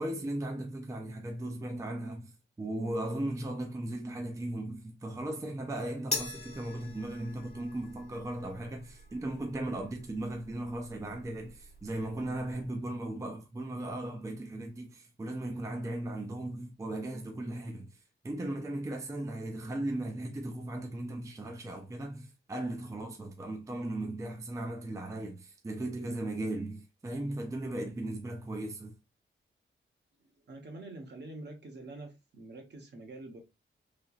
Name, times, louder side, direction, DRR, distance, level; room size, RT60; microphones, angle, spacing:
voice 1, 0.0-18.0 18.2-28.9, right 1 dB, 15° right, 0.4 m, -37 dB
sound 1, 6.1-12.7, left 2 dB, 30° left, 0.9 m, -43 dB
voice 2, 30.2-33.4, right 2 dB, 55° right, 1.0 m, -46 dB
3.2 x 2.9 x 2.3 m
wide cardioid pair, 155°, 21 cm